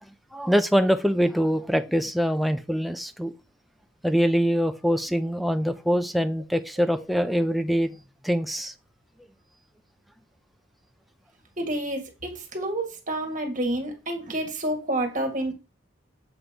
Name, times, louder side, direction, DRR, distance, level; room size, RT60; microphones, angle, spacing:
voice 1, 0.3-3.3 4.0-8.0 8.2-8.7, equal, ahead, 0.4 m, -24 dB
voice 2, 11.6-15.5, right 1 dB, 40° right, 1.6 m, -29 dB
7.3 x 3.0 x 5.1 m
head